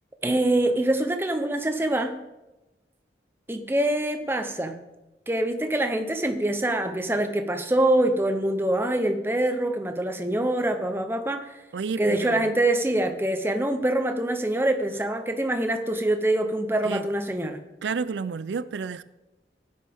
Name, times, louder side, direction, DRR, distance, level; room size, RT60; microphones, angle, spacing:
voice 1, 0.2-2.2 3.5-4.8 5.3-11.5 12.0-17.6, right 1 dB, 15° right, 7 dB, 0.7 m, -25 dB
voice 2, 11.7-12.5 16.8-17.1 17.8-19.0, right 5 dB, 85° right, 16 dB, 0.4 m, -31 dB
16.0 x 9.4 x 3.6 m, 1.0 s
head